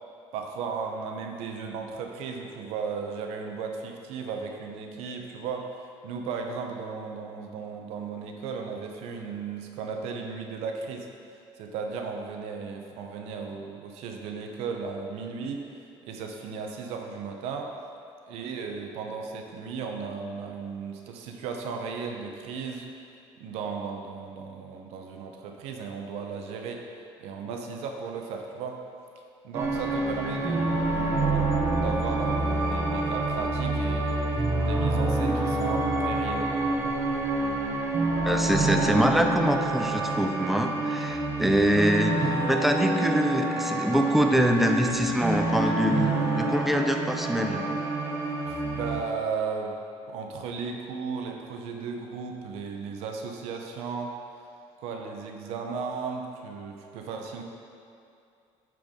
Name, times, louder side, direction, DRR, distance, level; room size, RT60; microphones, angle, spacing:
voice 1, 0.3-5.7 6.0-11.1 11.6-15.7 16.0-17.7 18.3-22.9 23.4-26.8 27.2-28.8 29.4-36.5 48.4-54.1 54.8-57.4, right 5 dB, 80° right, 3 dB, 0.7 m, -35 dB
sound 1, 29.5-49.0, right 2 dB, 25° right, 0.9 m, -27 dB
voice 2, 38.2-42.2 42.5-47.6, equal, ahead, 4 dB, 0.5 m, -24 dB
9.0 x 4.6 x 3.6 m, 2.5 s
cardioid pair, 125°, 11 cm